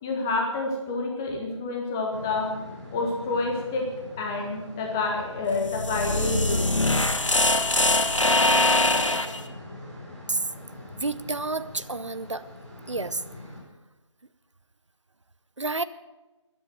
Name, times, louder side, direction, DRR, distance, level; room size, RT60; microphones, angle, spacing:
voice 1, 0.0-2.5 2.9-3.9 4.2-6.7, left 3 dB, 5° left, 1 dB, 0.6 m, -28 dB
sound 1, 2.1-13.6, left 1 dB, 25° right, 6.3 m, -42 dB
sound 2, 5.6-9.4, left 2 dB, 75° left, 1.5 m, -22 dB
voice 2, 10.9-12.5 12.9-13.2 15.6-15.8, right 3 dB, 70° right, 14 dB, 0.8 m, -29 dB
13.5 x 11.0 x 8.9 m, 1.1 s
figure-of-eight pair, 160°, 16 cm